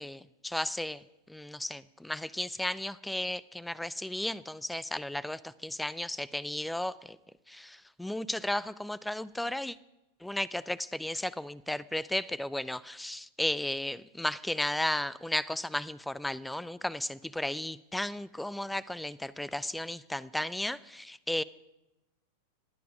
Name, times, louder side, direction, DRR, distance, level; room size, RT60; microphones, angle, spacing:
voice 1, 0.0-7.2 7.5-9.8 10.2-21.4, left 1 dB, 5° left, 20 dB, 0.4 m, -34 dB
26.0 x 9.4 x 5.2 m, 0.97 s
figure-of-eight pair, 90°, 0 cm